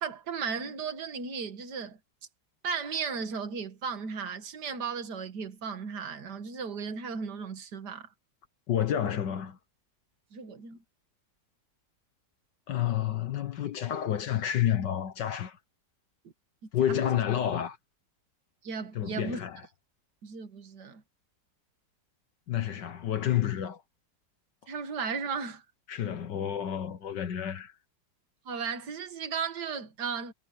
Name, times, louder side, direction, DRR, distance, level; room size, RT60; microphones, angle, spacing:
voice 1, 0.0-2.0 2.6-8.1 10.3-10.8 16.9-17.2 18.6-19.4 20.2-21.0 24.7-25.6 28.5-30.3, right 5 dB, 65° right, 2.3 m, -35 dB
voice 2, 8.7-9.6 12.7-15.6 16.7-17.8 19.0-19.6 22.5-23.8 25.9-27.7, left 10 dB, 75° left, 1.7 m, -29 dB
omnidirectional pair, 1.9 m